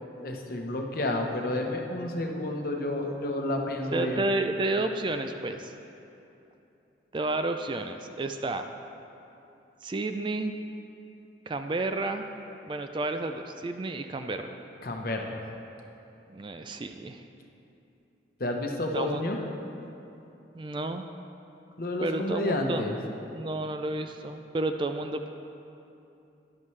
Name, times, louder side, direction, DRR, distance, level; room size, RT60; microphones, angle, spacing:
voice 1, 0.2-4.2 14.8-15.4 18.4-19.4 21.8-23.0, left 1 dB, 50° left, 2 dB, 0.9 m, -30 dB
voice 2, 3.9-5.7 7.1-8.7 9.8-10.5 11.5-12.2 12.7-14.5 16.3-17.2 18.9-19.2 20.5-21.1 22.0-22.8 23.3-25.3, right 2 dB, 25° right, 7 dB, 0.3 m, -31 dB
12.5 x 11.0 x 3.2 m, 2.9 s
head